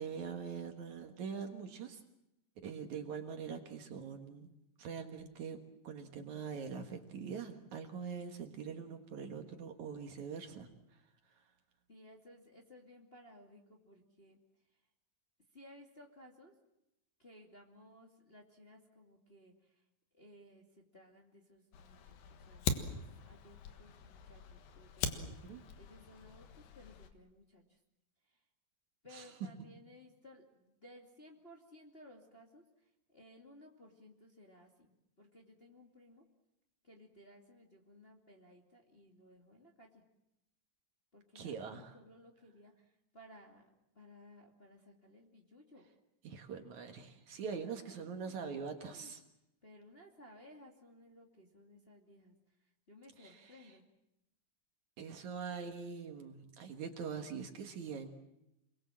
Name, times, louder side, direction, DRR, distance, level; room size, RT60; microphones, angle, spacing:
voice 1, 0.0-2.0 2.6-4.5 4.8-10.7 11.3-11.4 25.1-25.6 29.1-29.5 41.4-41.9 46.2-49.2 53.2-53.5 55.0-58.1, right 6 dB, 60° right, 5 dB, 2.8 m, -43 dB
voice 2, 11.9-14.4 14.7-14.8 15.5-16.5 17.2-19.8 20.1-25.4 25.8-27.8 28.2-28.4 29.0-36.2 36.8-40.0 41.1-43.7 43.9-45.9 47.3-48.4 48.9-49.1 49.6-53.9, left 1 dB, 20° left, 0 dB, 2.2 m, -59 dB
Fire, 21.7-27.1, left 5 dB, 75° left, 3.3 m, -42 dB
28.0 x 22.0 x 7.5 m, 0.87 s
omnidirectional pair, 4.1 m